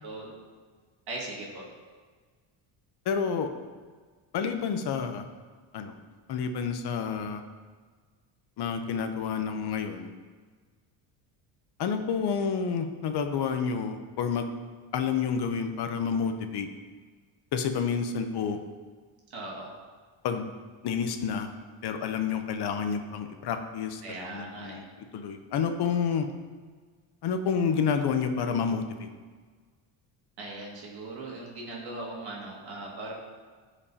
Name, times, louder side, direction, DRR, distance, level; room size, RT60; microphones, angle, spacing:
voice 1, 0.0-0.3 1.1-1.7 19.3-19.7 24.0-24.8 30.4-33.1, right 2 dB, 50° right, -3 dB, 2.2 m, -39 dB
voice 2, 3.1-3.5 4.3-5.2 5.7-6.0 6.3-7.4 8.6-10.1 11.8-14.5 14.9-16.7 17.5-18.6 20.2-20.5 20.8-21.5 21.8-24.8 25.1-26.3 27.2-29.1, left 6 dB, 55° left, 7 dB, 0.8 m, -29 dB
13.5 x 5.1 x 2.8 m, 1.5 s
cardioid pair, 125°, 49 cm